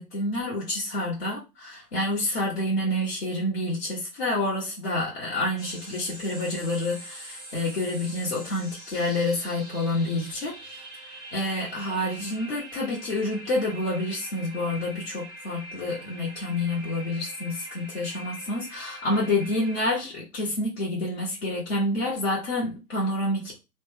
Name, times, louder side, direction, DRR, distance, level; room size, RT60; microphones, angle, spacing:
voice 1, 0.0-10.9 11.3-23.6, left 1 dB, 40° left, 1.1 m, -28 dB
sound 1, 5.6-19.8, right 1 dB, ahead, 0.7 m, -43 dB
2.9 x 2.2 x 3.1 m
figure-of-eight pair, 135°, 46 cm